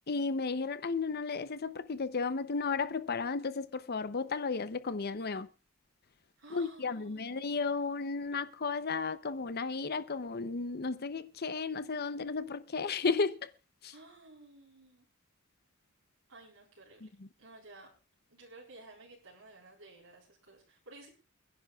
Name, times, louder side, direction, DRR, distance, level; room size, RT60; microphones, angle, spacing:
voice 1, 0.1-5.5 6.5-13.5 13.8-13.9 17.0-17.3, left 4 dB, 45° left, 0.7 m, -34 dB
voice 2, 6.4-7.4 13.9-15.1 16.3-17.9 18.3-21.1, right 2 dB, 70° right, 4.1 m, -54 dB
29.0 x 10.5 x 2.4 m
head